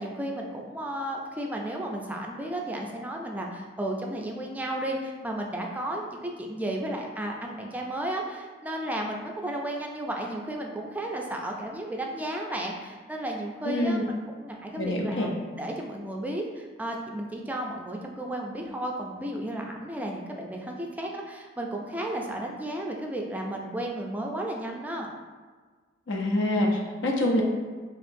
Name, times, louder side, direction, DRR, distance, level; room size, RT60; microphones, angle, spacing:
voice 1, 0.0-14.0 14.4-15.3 15.6-25.1, right 1 dB, 10° right, 0 dB, 0.4 m, -33 dB
voice 2, 13.7-14.0 14.8-15.3 26.1-27.4, left 1 dB, 75° left, 0 dB, 0.6 m, -26 dB
4.4 x 2.9 x 2.6 m, 1.4 s
head